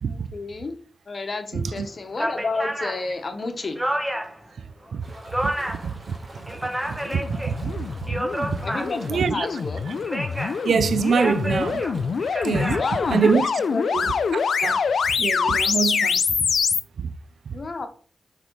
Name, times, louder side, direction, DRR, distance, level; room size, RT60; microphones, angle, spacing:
voice 1, 0.0-0.8 1.1-3.8 8.6-9.8 12.7-13.2 13.5-13.8 17.5-17.9, left 3 dB, 55° left, 1.1 m, -31 dB
voice 2, 1.5-1.9 4.9-5.0 5.4-5.5 5.8-6.0 6.9-8.2 8.5-8.6 9.1-9.5 10.6-11.8 12.4-12.8 13.1-13.5 13.9-14.1 14.6-14.8 15.2-16.2 17.0-17.1 17.5-17.6, right 6 dB, 80° right, 0.3 m, -24 dB
sound 1, 1.7-1.8 2.1-4.4 4.8-5.9 6.3-7.5 7.9-9.2 9.9-10.6 11.0-13.3, right 1 dB, 10° right, 1.1 m, -30 dB
sound 2, 5.0-15.1, right 1 dB, 50° right, 1.5 m, -46 dB
sound 3, 6.8-16.8, left 5 dB, 75° left, 0.4 m, -25 dB
6.1 x 3.6 x 4.6 m
cardioid pair, 65°, 0 cm